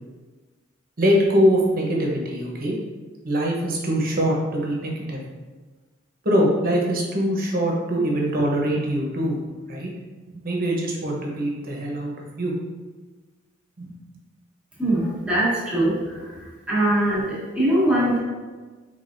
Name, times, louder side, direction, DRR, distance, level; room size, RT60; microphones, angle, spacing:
voice 1, 1.0-2.8 3.2-5.2 6.2-9.4 9.7-9.9 10.3-12.5 13.8-13.9, equal, 50° right, -2 dB, 1.0 m, -23 dB
voice 2, 14.8-18.2, right 1 dB, 5° right, -9 dB, 1.5 m, -22 dB
5.1 x 3.6 x 2.6 m, 1.3 s
head